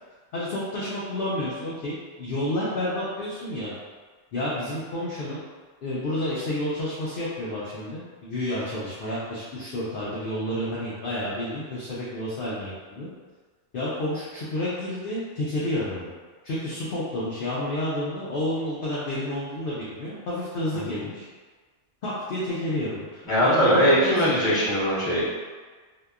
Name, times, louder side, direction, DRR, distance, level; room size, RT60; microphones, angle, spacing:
voice 1, 0.3-3.7 4.3-5.4 5.8-13.1 13.7-16.1 16.4-21.2 22.0-24.6, left 1 dB, 60° left, -8 dB, 0.6 m, -30 dB
voice 2, 20.7-21.0 23.3-25.2, equal, 20° left, -10 dB, 0.7 m, -21 dB
2.7 x 2.1 x 2.3 m, 1.4 s
omnidirectional pair, 1.3 m